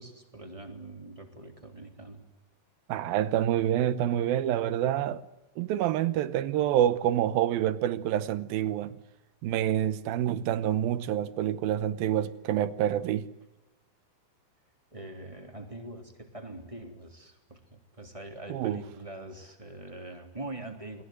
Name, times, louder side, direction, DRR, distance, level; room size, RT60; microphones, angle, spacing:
voice 1, 0.0-2.2 14.9-21.0, right 2 dB, 10° right, 3.0 m, -43 dB
voice 2, 2.9-5.2 5.6-9.0 9.4-13.3 18.5-18.8, right 11 dB, 85° right, 2.8 m, -27 dB
29.0 x 20.5 x 7.9 m
omnidirectional pair, 4.1 m